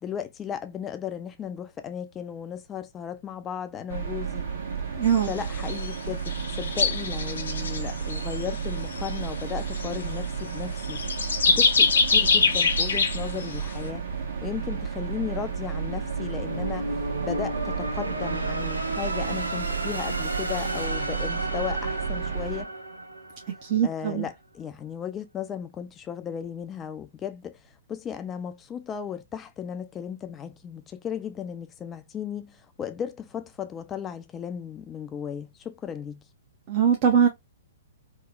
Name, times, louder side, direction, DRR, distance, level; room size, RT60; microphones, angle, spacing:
voice 1, 0.0-4.5 5.3-11.0 11.5-14.1 14.4-16.9 17.2-22.7 23.8-27.6 27.9-36.2, left 8 dB, 20° left, 0.4 m, -35 dB
sound 1, 3.9-22.6, right 6 dB, 60° right, 1.0 m, -32 dB
voice 2, 5.0-5.3 23.6-24.3 36.7-37.3, right 8 dB, 40° right, 0.6 m, -21 dB
sound 2, 5.1-5.3 5.6-5.9 6.3-8.5 8.9-10.0 10.8-13.5, left 4 dB, 75° left, 0.6 m, -24 dB
sound 3, 13.7-23.9, right 1 dB, 90° right, 0.5 m, -34 dB
3.0 x 2.0 x 2.3 m
figure-of-eight pair, 115°, 0 cm